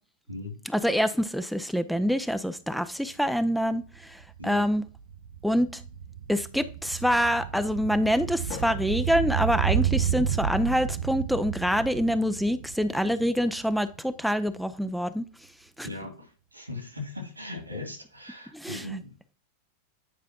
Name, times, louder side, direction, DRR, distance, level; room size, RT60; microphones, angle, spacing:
voice 1, 0.7-4.8 5.4-5.8 6.3-15.3 15.8-15.9 18.5-19.0, equal, ahead, 0.4 m, -26 dB
sound 1, 3.2-3.3 3.6-14.0 14.2-14.3, right 9 dB, 55° right, 0.4 m, -31 dB
Drum, 8.5-10.5, left 7 dB, 50° left, 1.5 m, -46 dB
voice 2, 15.8-19.3, left 2 dB, 85° right, 2.5 m, -39 dB
9.2 x 4.9 x 2.8 m
figure-of-eight pair, 90°, 0 cm